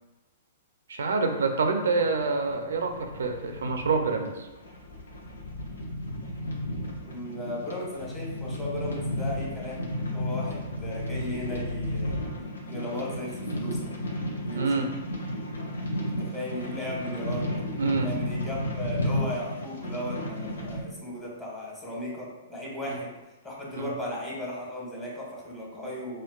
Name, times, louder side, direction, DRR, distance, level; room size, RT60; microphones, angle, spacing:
voice 1, 0.9-4.5 14.6-14.9 17.8-18.1 22.9-23.0 23.7-23.9, right 4 dB, 75° right, 5 dB, 0.4 m, -27 dB
sound 1, 1.5-20.8, left 1 dB, 85° left, 0.6 m, -33 dB
voice 2, 7.0-12.2 12.7-13.9 14.4-14.8 16.1-17.5 18.0-23.1 23.4-26.2, left 1 dB, 15° left, -4 dB, 1.1 m, -36 dB
4.4 x 2.1 x 2.3 m, 1.1 s
hypercardioid pair, 120°, 0 cm